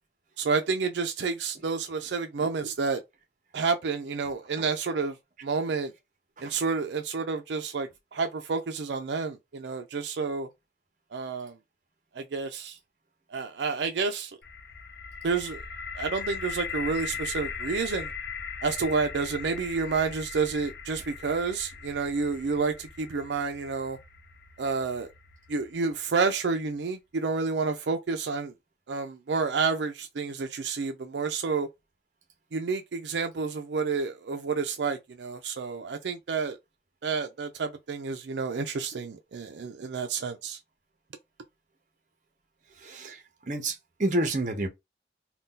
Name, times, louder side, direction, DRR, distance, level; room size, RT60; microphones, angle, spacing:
voice 1, 0.4-3.0 3.5-5.2 5.4-5.9 6.4-10.5 11.1-11.5 12.1-12.8 13.3-14.3 15.2-15.6 16.0-18.1 18.6-24.0 24.6-25.1 25.5-28.5 28.9-31.7 32.5-36.6 37.0-40.6, right 4 dB, 80° right, 0.4 m, -29 dB
sound 1, 14.4-26.3, left 6 dB, 65° left, 0.6 m, -39 dB
voice 2, 42.8-43.2 43.5-44.7, right 1 dB, 45° right, 0.7 m, -29 dB
2.6 x 2.3 x 3.7 m
head